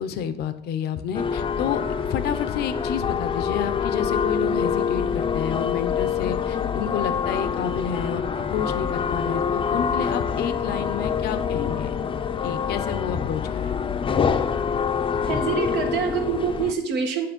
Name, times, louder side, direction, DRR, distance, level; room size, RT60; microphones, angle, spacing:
voice 1, 0.0-1.8 2.1-11.9 12.4-13.7, left 8 dB, 70° left, 11 dB, 0.7 m, -30 dB
sound 1, 1.1-16.7, left 7 dB, 30° left, 0.5 m, -26 dB
voice 2, 15.3-17.3, right 6 dB, 85° right, 4 dB, 1.5 m, -25 dB
8.6 x 5.2 x 5.2 m, 0.79 s
cardioid pair, 110°, 17 cm